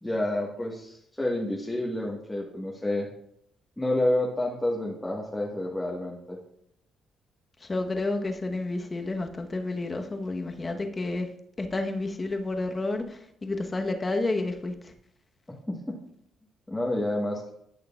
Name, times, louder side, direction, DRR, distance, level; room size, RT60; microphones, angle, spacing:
voice 1, 0.0-3.1 3.8-6.4 15.7-15.8 16.7-17.5, left 1 dB, 10° left, -3 dB, 1.4 m, -29 dB
voice 2, 7.6-11.3 11.6-14.7, left 2 dB, 25° left, 4 dB, 1.0 m, -30 dB
12.5 x 6.5 x 2.4 m, 0.73 s
cardioid pair, 90°, 0 cm